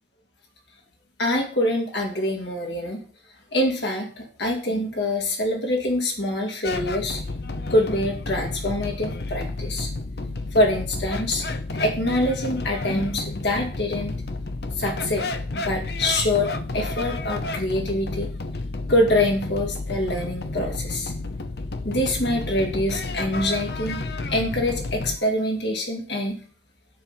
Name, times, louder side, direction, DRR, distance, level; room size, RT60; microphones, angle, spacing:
voice 1, 1.2-3.0 3.5-7.2 7.7-9.9 10.5-11.4 11.8-14.1 14.8-18.3 18.9-21.1 21.8-24.0 24.3-26.4, left 1 dB, 80° left, 0 dB, 2.5 m, -25 dB
sound 1, 6.6-25.2, left 2 dB, 65° left, 0.8 m, -31 dB
10.0 x 4.3 x 7.5 m, 0.43 s
head